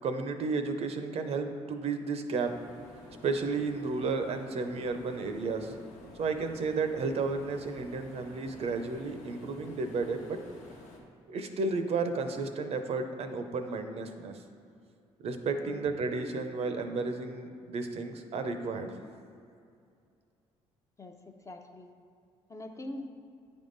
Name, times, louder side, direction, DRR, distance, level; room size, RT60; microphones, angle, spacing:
voice 1, 0.0-2.5 3.2-5.7 6.2-10.4 11.3-14.4 15.2-19.0, right 4 dB, 60° right, 7 dB, 0.6 m, -32 dB
sound 1, 2.4-11.0, left 2 dB, 85° left, 1.2 m, -51 dB
voice 2, 21.0-21.9 22.5-23.1, left 1 dB, 25° left, 4 dB, 0.6 m, -43 dB
9.0 x 3.6 x 3.9 m, 2.5 s
cardioid pair, 80°, 12 cm